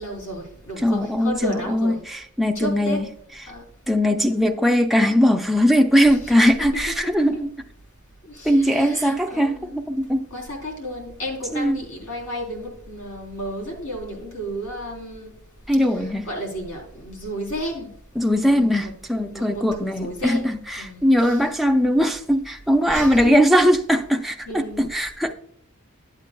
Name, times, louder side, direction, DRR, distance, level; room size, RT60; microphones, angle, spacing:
voice 1, 0.0-2.0 2.6-3.0 3.5-3.6 6.1-6.2 6.9-7.3 8.3-9.8 10.3-15.3 16.0-17.9 18.5-21.4 22.9-23.3 24.5-24.9, equal, 90° left, 3.7 m, -33 dB
voice 2, 0.8-3.1 3.4-3.5 3.9-7.5 8.4-10.2 11.5-11.8 15.7-16.3 18.2-25.3, equal, ahead, 0.3 m, -20 dB
12.0 x 8.1 x 2.2 m
head